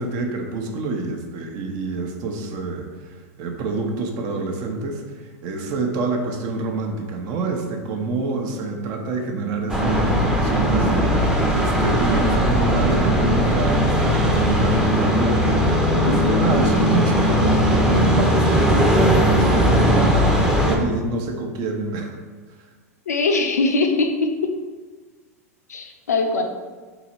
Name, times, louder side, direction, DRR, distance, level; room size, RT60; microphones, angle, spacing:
voice 1, 0.0-22.1, right 3 dB, 45° right, 3 dB, 0.7 m, -27 dB
sound 1, 9.7-20.8, equal, 5° right, 0.6 m, -18 dB
voice 2, 15.9-16.4 23.1-24.3 25.7-26.4, left 3 dB, 85° left, 3 dB, 0.6 m, -22 dB
3.8 x 2.9 x 4.3 m, 1.4 s
hypercardioid pair, 95°, 8 cm